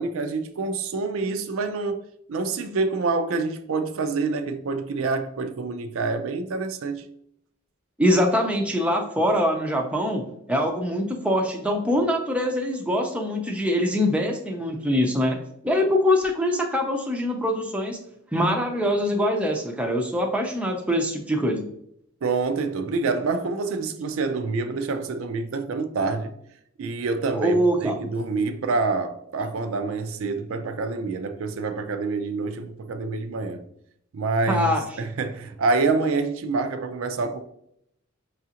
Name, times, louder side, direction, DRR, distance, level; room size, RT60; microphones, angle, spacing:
voice 1, 0.0-2.0 2.3-7.1 22.2-26.3 26.8-33.6 34.1-37.4, right 3 dB, 70° right, 0.4 m, -27 dB
voice 2, 8.0-10.2 10.5-15.4 15.6-18.0 18.3-21.7 27.3-28.1 34.5-34.8, equal, 5° right, 0.4 m, -23 dB
5.7 x 2.4 x 2.8 m
head